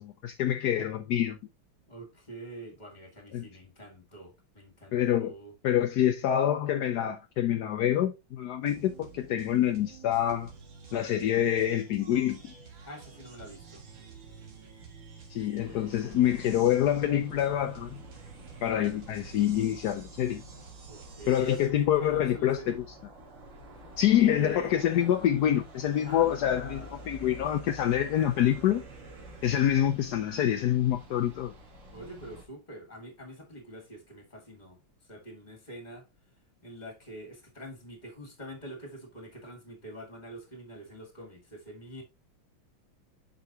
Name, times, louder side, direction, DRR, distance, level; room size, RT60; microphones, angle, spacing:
voice 1, 0.0-1.4 3.3-3.4 4.9-5.3 5.6-10.5 10.9-12.5 15.3-18.0 18.6-20.4 21.3-22.8 24.0-28.8 29.4-31.5, left 11 dB, 70° left, 0.9 m, -26 dB
voice 2, 1.9-5.5 12.8-13.8 20.9-22.8 24.1-24.8 26.0-27.2 31.9-34.8 35.1-36.1 36.6-42.0, right 1 dB, 20° left, 2.0 m, -45 dB
sound 1, 8.6-21.7, right 5 dB, 65° right, 2.3 m, -49 dB
sound 2, 15.6-32.5, equal, 80° right, 3.1 m, -49 dB
7.7 x 5.7 x 2.8 m
omnidirectional pair, 2.4 m